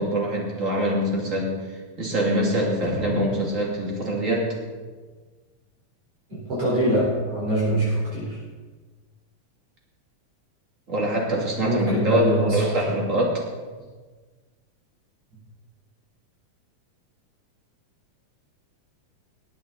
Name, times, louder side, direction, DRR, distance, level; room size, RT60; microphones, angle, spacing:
voice 1, 0.0-1.6 2.0-4.6 10.9-13.4, right 1 dB, 25° right, -2 dB, 2.4 m, -24 dB
sound 1, 2.8-5.4, left 1 dB, 65° left, 3.8 m, -37 dB
voice 2, 6.3-8.4 11.6-13.0, right 1 dB, 50° right, -8 dB, 4.9 m, -24 dB
19.0 x 8.8 x 4.0 m, 1.4 s
omnidirectional pair, 3.4 m